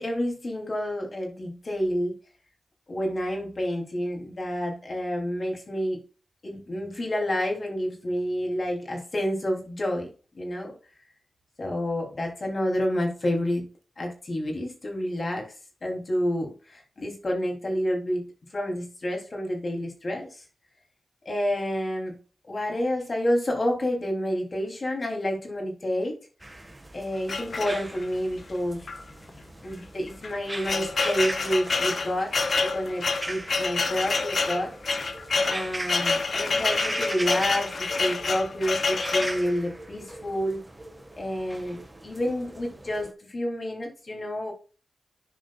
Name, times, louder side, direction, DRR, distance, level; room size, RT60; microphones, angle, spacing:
voice 1, 0.0-2.2 2.9-6.0 6.4-10.1 10.3-10.7 11.6-13.7 14.0-15.5 15.8-20.4 21.2-22.2 22.5-26.2 26.9-28.9 29.6-35.1 35.4-40.6 41.2-44.5, equal, 50° left, 1 dB, 3.2 m, -29 dB
sound 1, 26.4-43.1, right 1 dB, 15° right, 1.6 m, -40 dB
sound 2, 27.3-28.1 28.9-29.0 29.3-29.4 30.1-39.4, left 4 dB, 65° left, 0.8 m, -27 dB
13.0 x 5.1 x 2.4 m, 0.35 s
cardioid pair, 65°, 0 cm